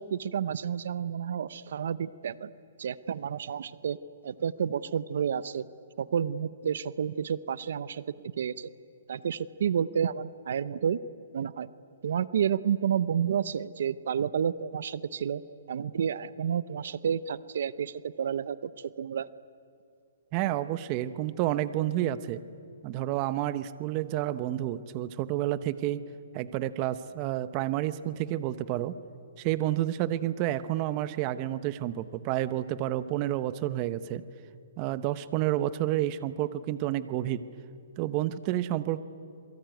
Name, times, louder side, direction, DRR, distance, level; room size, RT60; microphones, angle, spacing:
voice 1, 0.0-2.5 2.8-4.0 4.2-5.7 6.0-8.7 9.1-11.0 11.3-11.7 12.0-15.4 15.7-19.3, right 8 dB, 65° right, 17 dB, 0.8 m, -30 dB
voice 2, 20.3-22.4 22.8-26.0 26.3-29.0 29.4-34.2 34.8-37.4 38.0-39.0, right 13 dB, 30° right, 14 dB, 0.9 m, -30 dB
27.0 x 23.0 x 9.3 m, 2.6 s
hypercardioid pair, 155°, 0 cm